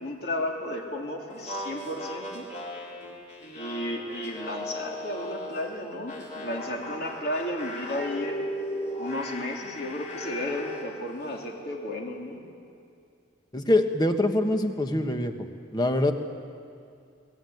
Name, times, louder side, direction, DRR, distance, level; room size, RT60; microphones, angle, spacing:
voice 1, 0.0-2.5 3.5-8.4 9.0-12.4, left 1 dB, 50° left, 0 dB, 3.2 m, -33 dB
sound 1, 1.3-5.6 6.1-10.9, left 1 dB, 35° left, 4.2 m, -37 dB
voice 2, 13.5-15.5 15.7-16.1, left 1 dB, 20° left, 6 dB, 1.4 m, -24 dB
28.5 x 18.5 x 9.4 m, 2.4 s
head